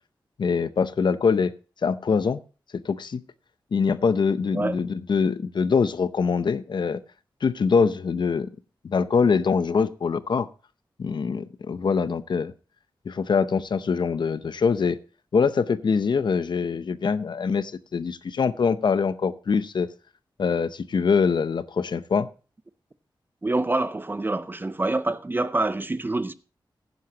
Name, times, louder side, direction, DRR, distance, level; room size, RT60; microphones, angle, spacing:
voice 1, 0.4-1.5 1.8-2.4 2.8-3.2 3.7-7.0 7.4-8.5 8.8-10.5 11.0-12.5 13.1-15.0 15.3-19.9 20.4-22.3, left 5 dB, 65° left, 0.7 m, -23 dB
voice 2, 23.4-26.3, right 2 dB, 25° right, 0.6 m, -26 dB
15.5 x 10.0 x 2.8 m
wide cardioid pair, 80°, 8 cm